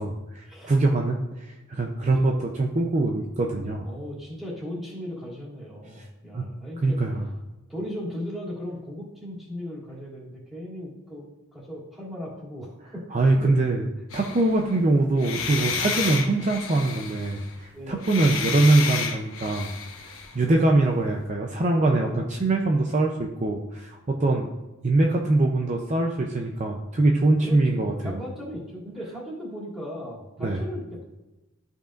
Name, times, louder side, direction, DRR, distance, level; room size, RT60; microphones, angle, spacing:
voice 1, 0.0-3.9 6.0-6.1 6.3-6.5 6.8-7.2 13.1-13.9 14.1-19.7 20.0-24.5 24.8-28.1 30.4-30.6, right 2 dB, 35° right, 1 dB, 0.6 m, -23 dB
voice 2, 3.8-7.0 7.7-13.1 13.3-13.7 17.7-18.0 20.3-20.4 21.9-22.3 24.0-24.3 27.4-27.6 28.0-31.0, equal, ahead, -8 dB, 2.7 m, -37 dB
sound 1, 14.1-14.8 15.2-17.5 18.0-20.4, left 5 dB, 75° left, 1.1 m, -31 dB
13.0 x 5.4 x 2.5 m, 1.1 s
head